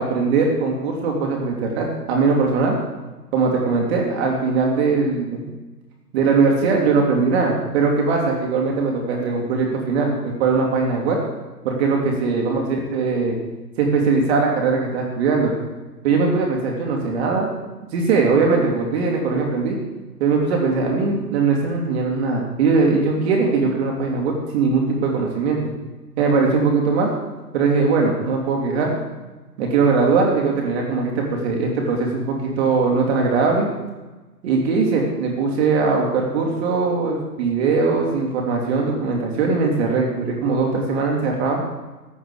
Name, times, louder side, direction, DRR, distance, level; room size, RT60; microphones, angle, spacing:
voice 1, 0.0-2.8 3.3-5.4 6.1-11.2 11.6-13.4 13.8-15.5 16.0-17.5 17.9-19.8 20.2-25.7 26.2-27.1 27.5-28.9 29.6-33.7 34.4-41.6, right 4 dB, 40° right, 0 dB, 2.9 m, -20 dB
15.0 x 11.0 x 4.9 m, 1.2 s
hypercardioid pair, 130°, 48 cm